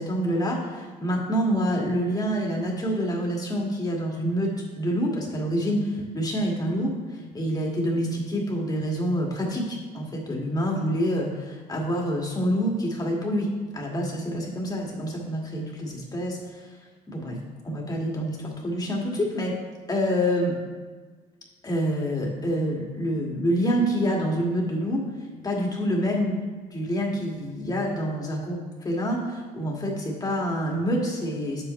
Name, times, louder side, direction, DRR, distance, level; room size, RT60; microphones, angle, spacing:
voice 1, 0.0-4.5 4.8-6.9 7.3-13.5 13.7-16.7 17.1-17.4 17.6-19.5 19.9-20.6 21.6-25.0 25.4-26.4 26.7-31.6, equal, 20° left, -2 dB, 2.0 m, -27 dB
8.7 x 7.9 x 3.2 m, 1.4 s
cardioid pair, 110°, 17 cm